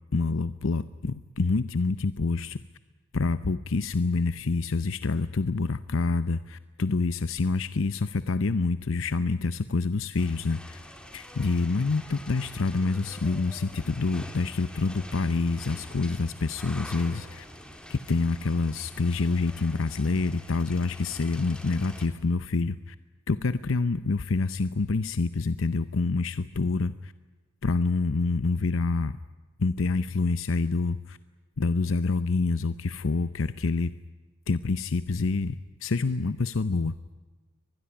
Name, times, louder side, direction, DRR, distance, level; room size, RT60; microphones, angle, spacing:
voice 1, 0.1-2.6 3.1-10.8 11.1-17.5 17.9-23.0 23.3-27.1 27.6-29.2 29.6-31.2 31.6-34.0 34.5-36.9, left 3 dB, 70° left, 14 dB, 0.7 m, -27 dB
sound 1, 10.2-22.1, equal, 5° left, 2.9 m, -45 dB
24.0 x 20.5 x 9.9 m, 1.3 s
head